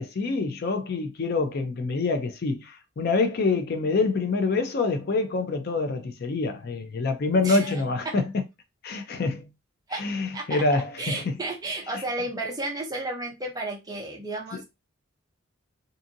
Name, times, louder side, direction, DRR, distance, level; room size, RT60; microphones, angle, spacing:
voice 1, 0.0-8.2 8.8-9.5 10.0-11.3 14.5-14.6, left 3 dB, 50° left, 0.4 m, -26 dB
voice 2, 7.3-8.1 9.9-10.0 10.3-14.6, right 2 dB, 20° right, 0.6 m, -33 dB
2.6 x 2.6 x 2.6 m
head